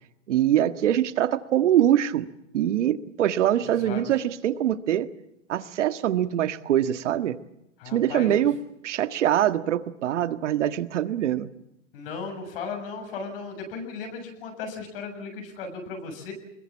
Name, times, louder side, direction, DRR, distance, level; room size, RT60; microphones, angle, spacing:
voice 1, 0.3-2.3 2.5-5.1 5.5-7.3 7.8-8.6 8.8-11.5, right 11 dB, 70° right, 10 dB, 1.7 m, -23 dB
voice 2, 7.8-8.4 11.9-16.3, left 4 dB, 50° left, 4 dB, 7.1 m, -36 dB
25.0 x 22.0 x 7.3 m, 0.86 s
supercardioid pair, 165°, 37 cm